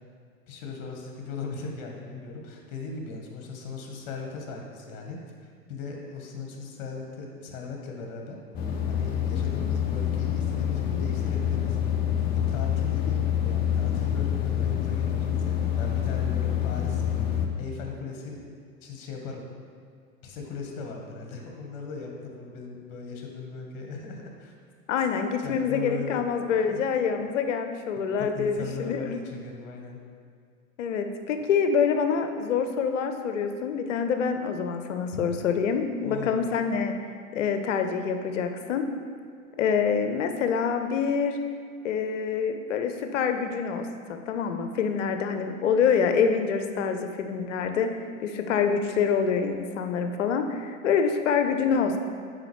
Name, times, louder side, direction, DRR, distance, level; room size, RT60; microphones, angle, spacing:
voice 1, 0.5-11.8 12.5-17.3 17.6-18.4 18.8-19.4 20.2-24.5 25.4-26.3 26.7-26.8 28.2-30.0 35.1-35.2 36.0-36.4, left 4 dB, 45° left, 1 dB, 1.2 m, -38 dB
sound 1, 8.5-17.5, left 9 dB, 20° left, 0.5 m, -27 dB
voice 2, 24.9-29.3 30.8-38.8 39.6-41.4 41.8-52.0, left 6 dB, 60° left, 7 dB, 0.7 m, -26 dB
7.6 x 5.1 x 3.0 m, 2.2 s
figure-of-eight pair, 90°, 42 cm